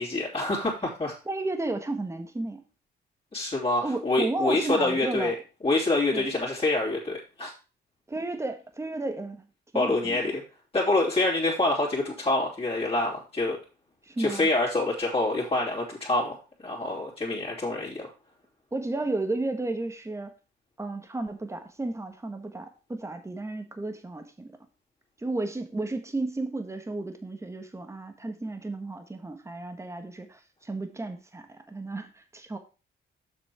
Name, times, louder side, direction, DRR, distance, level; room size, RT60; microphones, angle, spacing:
voice 1, 0.0-1.1 3.3-5.3 5.6-7.5 9.7-10.4 10.7-13.6 14.2-18.1, left 2 dB, 30° left, -6 dB, 3.3 m, -26 dB
voice 2, 1.2-2.6 3.8-5.3 6.1-6.3 8.1-9.4 9.7-10.3 14.0-14.5 18.7-20.3 20.8-24.5 25.2-32.6, right 2 dB, 15° right, 6 dB, 1.6 m, -33 dB
7.6 x 6.0 x 4.6 m, 0.33 s
cardioid pair, 90°, 20 cm